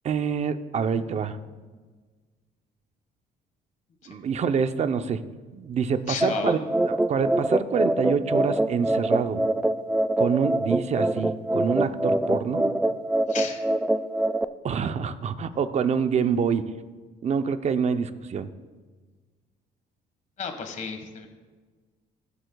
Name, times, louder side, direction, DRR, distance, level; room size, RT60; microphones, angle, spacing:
voice 1, 0.0-1.4 4.1-5.2 5.5-6.6 6.9-9.4 10.2-12.7 14.6-16.7 17.2-18.5, right 6 dB, 40° right, 10 dB, 0.7 m, -26 dB
voice 2, 6.1-6.5 13.3-13.6 20.4-21.3, left 6 dB, 45° left, 5 dB, 1.5 m, -33 dB
sound 1, 6.2-14.4, right 1 dB, 5° right, 0.3 m, -24 dB
22.0 x 7.9 x 2.3 m, 1.4 s
cardioid pair, 110°, 17 cm